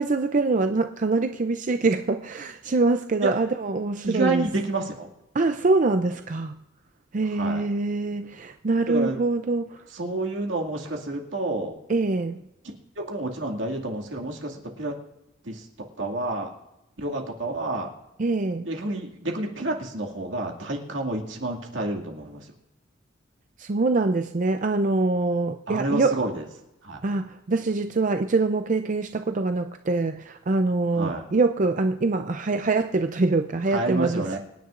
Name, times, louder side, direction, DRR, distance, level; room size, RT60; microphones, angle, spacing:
voice 1, 0.0-4.4 5.3-6.6 7.1-9.8 11.9-12.4 18.2-18.7 23.6-26.2 27.0-34.4, right 3 dB, 40° right, 8 dB, 0.5 m, -24 dB
voice 2, 4.0-5.1 7.3-7.7 8.9-9.2 9.9-11.7 13.0-15.0 15.4-15.7 16.0-16.5 17.0-17.9 18.7-22.5 25.7-26.4 26.8-27.0 30.9-31.2 33.7-34.4, right 2 dB, 80° right, 0 dB, 2.2 m, -29 dB
25.0 x 10.0 x 2.5 m, 0.91 s
head